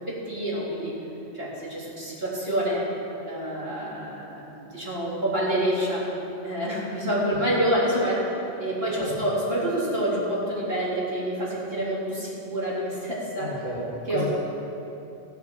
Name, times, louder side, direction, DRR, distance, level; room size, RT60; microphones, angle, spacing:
voice 1, 0.1-0.9 1.3-2.8 3.2-6.0 6.4-13.6 14.1-14.2, right 1 dB, 65° right, -8 dB, 4.0 m, -27 dB
voice 2, 13.4-14.2, left 1 dB, 40° right, -8 dB, 2.5 m, -33 dB
15.5 x 8.1 x 7.6 m, 2.8 s
omnidirectional pair, 1.1 m